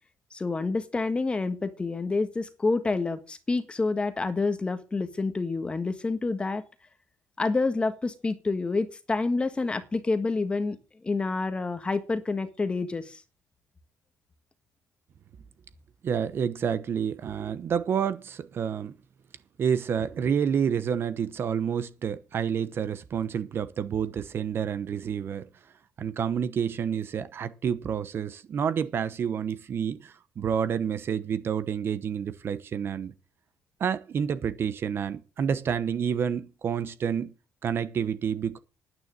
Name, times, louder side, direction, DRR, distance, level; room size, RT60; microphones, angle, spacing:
voice 1, 0.3-6.6 7.4-10.8 11.0-13.2, left 3 dB, 20° left, 1.5 m, -28 dB
voice 2, 16.0-18.9 19.6-25.5 26.0-33.1 33.8-37.3 37.6-38.6, right 7 dB, 40° right, 1.0 m, -29 dB
9.6 x 9.4 x 7.6 m
cardioid pair, 140°, 6 cm